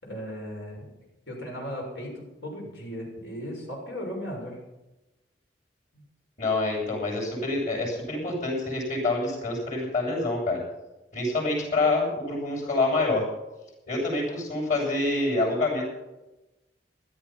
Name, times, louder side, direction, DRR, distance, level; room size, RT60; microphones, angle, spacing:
voice 1, 0.0-0.9 1.3-4.6 5.9-6.0, equal, 85° left, -1 dB, 6.7 m, -36 dB
voice 2, 6.4-10.6 11.1-13.2 13.9-15.9, left 2 dB, 50° left, -8 dB, 7.0 m, -26 dB
16.5 x 12.5 x 5.9 m, 1.0 s
head